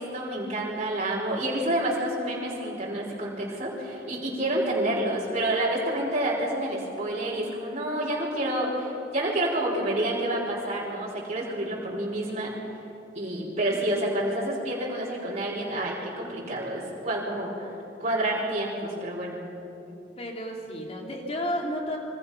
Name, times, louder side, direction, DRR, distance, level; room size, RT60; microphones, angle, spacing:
voice 1, 0.0-12.5 13.1-19.4, right 1 dB, 35° right, -5 dB, 5.0 m, -29 dB
voice 2, 13.3-13.7 19.9-22.0, equal, 35° left, 0 dB, 3.5 m, -33 dB
26.5 x 23.5 x 5.8 m, 2.8 s
head